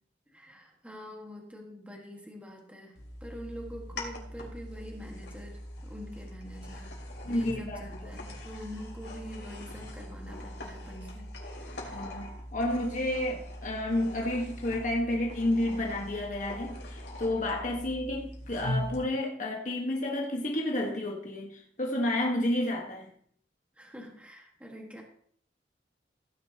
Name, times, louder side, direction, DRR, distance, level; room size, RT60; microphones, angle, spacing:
voice 1, 0.3-12.2 23.7-25.0, equal, 5° right, 1.7 m, -46 dB
sound 1, 3.0-19.0, left 1 dB, 65° left, 2.9 m, -41 dB
voice 2, 7.2-8.3 11.9-23.1, left 1 dB, 45° left, 1.5 m, -31 dB
16.0 x 9.8 x 2.9 m
head